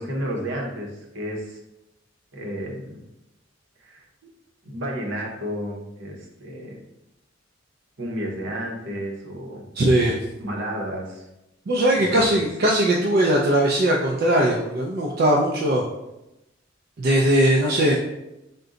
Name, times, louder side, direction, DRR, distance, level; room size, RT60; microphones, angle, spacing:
voice 1, 0.0-1.6 2.3-3.0 3.8-4.0 4.6-6.8 8.0-9.6 10.4-11.3 11.9-12.4, equal, 75° right, -1 dB, 0.9 m, -31 dB
voice 2, 9.8-10.2 11.7-15.8 17.0-17.9, right 1 dB, 55° right, -2 dB, 0.4 m, -20 dB
3.8 x 2.2 x 3.7 m, 0.91 s
head